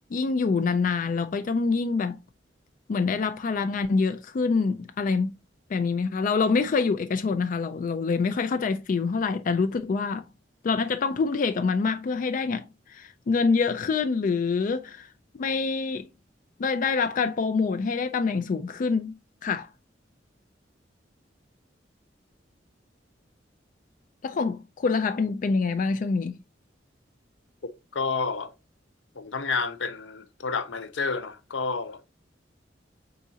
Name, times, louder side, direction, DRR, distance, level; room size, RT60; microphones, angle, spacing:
voice 1, 0.1-2.2 2.9-5.3 5.7-10.3 10.6-15.1 15.3-16.1 16.6-19.1 19.4-19.7 24.2-26.3, left 4 dB, 45° left, 0.3 m, -26 dB
voice 2, 27.9-28.5 29.2-32.0, left 4 dB, 85° left, 0.6 m, -30 dB
4.7 x 3.9 x 2.7 m
head